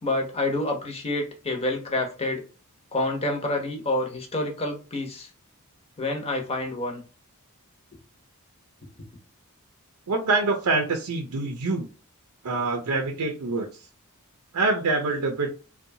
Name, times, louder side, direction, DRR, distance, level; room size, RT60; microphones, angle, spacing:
voice 1, 0.0-2.4 2.9-5.3 6.0-7.0, left 2 dB, 25° left, 0.7 m, -28 dB
voice 2, 10.1-11.9 12.4-13.8 14.5-15.5, right 3 dB, 90° right, 0.5 m, -25 dB
2.6 x 2.2 x 2.6 m
head